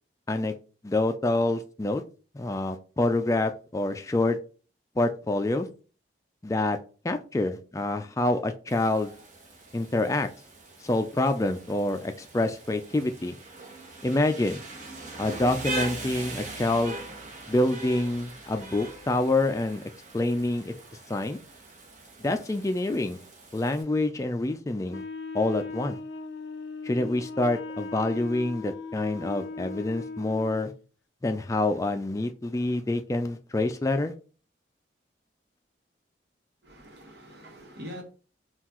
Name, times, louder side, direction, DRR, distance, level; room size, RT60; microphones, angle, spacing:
voice 1, 0.8-2.0 2.3-4.4 5.0-5.7 6.4-6.8 7.0-9.1 9.7-10.3 10.8-13.4 14.0-14.6 15.2-17.0 17.5-19.8 20.1-20.7 21.1-21.4 22.2-23.2 23.5-25.0 25.3-26.0 26.8-30.7 31.2-34.1, left 2 dB, 15° left, 0.3 m, -27 dB
Rain, 8.7-23.8, right 2 dB, 45° right, 1.0 m, -41 dB
Wind instrument woodwind instrument, 24.9-30.8, left 4 dB, 90° left, 0.4 m, -38 dB
voice 2, 36.6-38.0, equal, 65° right, 1.2 m, -43 dB
5.6 x 2.4 x 2.9 m
head